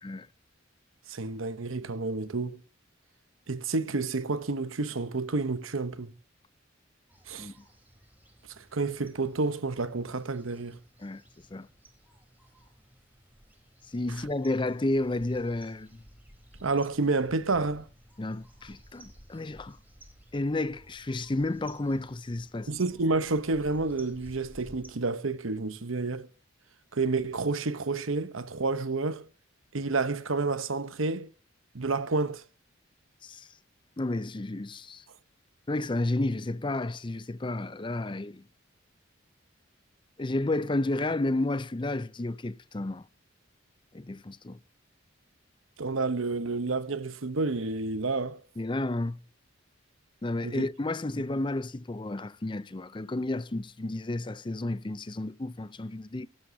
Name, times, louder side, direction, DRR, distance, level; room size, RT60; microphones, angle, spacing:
voice 1, 1.1-2.6 3.5-6.1 7.3-7.5 8.6-10.8 16.6-17.9 22.7-26.3 26.9-29.3 29.7-31.3 31.7-32.4 45.8-48.4 50.4-50.6, right 3 dB, 85° right, 1.0 m, -29 dB
sound 1, 7.1-24.9, right 1 dB, 10° right, 3.8 m, -55 dB
voice 2, 13.9-16.0 18.2-19.8 20.3-22.7 33.2-33.5 34.0-35.0 35.7-38.4 40.2-43.1 43.9-44.6 48.6-49.2 50.2-56.3, left 2 dB, 25° left, 0.5 m, -31 dB
17.5 x 11.0 x 2.8 m
head